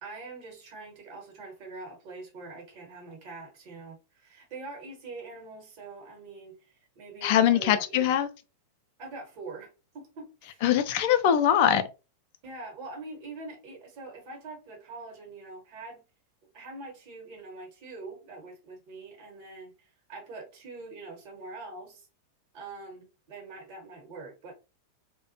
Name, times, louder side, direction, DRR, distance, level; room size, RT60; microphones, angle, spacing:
voice 1, 0.0-8.2 9.0-9.7 9.9-10.6 12.4-16.0 16.5-22.1 22.5-24.5, right 3 dB, 45° right, 1.0 m, -44 dB
voice 2, 7.2-8.3 10.6-11.9, left 10 dB, 45° left, 0.3 m, -22 dB
2.4 x 2.1 x 2.7 m
figure-of-eight pair, 90°, 0 cm